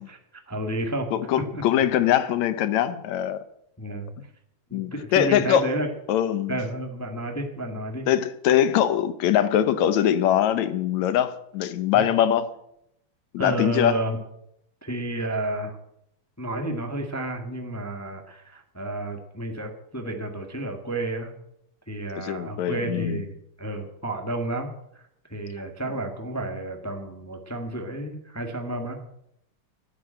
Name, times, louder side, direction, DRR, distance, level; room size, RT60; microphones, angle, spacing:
voice 1, 0.5-1.1 1.4-1.6 3.8-4.1 4.7-5.9 6.5-8.1 11.9-12.0 13.4-14.2 14.8-15.8 16.4-21.3 21.9-24.7 24.9-25.0 25.3-29.0, right 1 dB, 10° left, 3 dB, 0.8 m, -31 dB
voice 2, 1.1-3.4 4.7-5.7 6.1-6.6 8.1-12.5 13.3-14.0 22.2-23.2, left 10 dB, 75° left, 13 dB, 2.2 m, -22 dB
12.0 x 9.7 x 8.8 m, 0.77 s
omnidirectional pair, 3.3 m